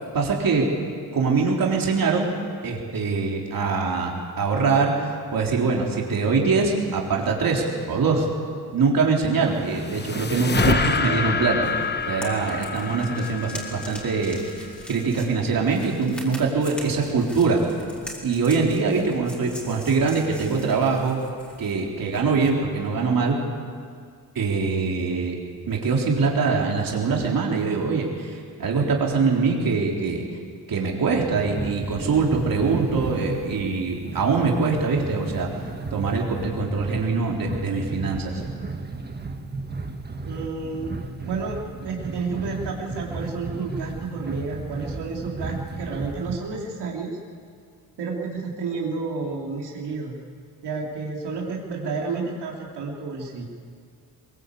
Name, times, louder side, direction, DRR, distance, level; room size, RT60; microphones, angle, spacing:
voice 1, 0.1-0.7 1.1-2.3 2.6-8.3 8.7-11.7 12.1-17.6 18.2-21.2 21.6-23.4 24.4-25.4 25.7-30.2 30.7-35.5 35.9-38.3, right 4 dB, 60° right, -1 dB, 3.9 m, -23 dB
sound 1, 9.3-14.7, left 5 dB, 25° left, 1.1 m, -27 dB
sound 2, 11.6-22.6, equal, 5° left, 4.3 m, -43 dB
sound 3, 31.4-46.4, right 3 dB, 25° right, 1.6 m, -34 dB
voice 2, 40.2-40.9 41.3-47.2 48.0-50.2 50.6-53.4, right 4 dB, 85° right, -1 dB, 3.5 m, -31 dB
22.5 x 22.5 x 8.5 m, 2.2 s
wide cardioid pair, 140°, 39 cm